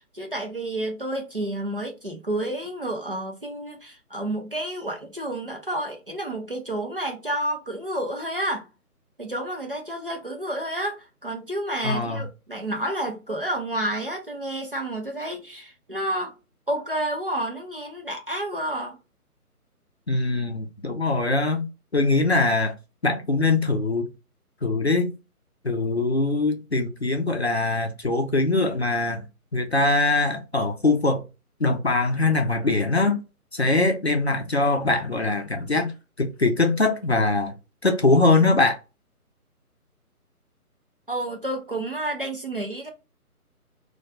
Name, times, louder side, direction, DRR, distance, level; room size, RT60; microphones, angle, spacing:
voice 1, 0.0-8.7 9.2-16.3 16.7-19.0 41.1-42.9, right 1 dB, 40° right, 0.5 m, -30 dB
voice 2, 11.8-12.3 20.1-21.6 21.9-22.7 23.0-24.1 24.6-25.1 25.6-29.3 29.5-31.3 31.6-33.2 33.5-37.5 37.8-38.8, left 3 dB, 45° left, 0.4 m, -22 dB
2.3 x 2.2 x 2.7 m
figure-of-eight pair, 150°, 45 cm